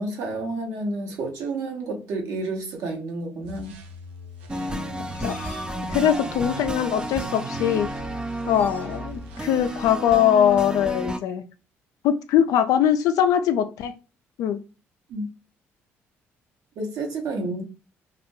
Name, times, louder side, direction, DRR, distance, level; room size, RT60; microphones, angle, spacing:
voice 1, 0.0-3.7 15.1-15.3 16.8-17.6, right 2 dB, 70° right, 0.9 m, -30 dB
sound 1, 3.4-10.0, right 1 dB, 90° right, 0.4 m, -42 dB
sound 2, 4.5-11.2, right 1 dB, 15° right, 0.4 m, -32 dB
sound 3, 5.1-5.8 6.5-6.7 7.5-7.6 7.8-8.1 8.4-8.9, left 2 dB, 30° left, 0.8 m, -42 dB
voice 2, 5.9-7.9 8.5-11.4 12.0-13.9 14.4-14.6, left 9 dB, 70° left, 0.3 m, -21 dB
2.3 x 2.1 x 3.0 m
hypercardioid pair, 55°, 6 cm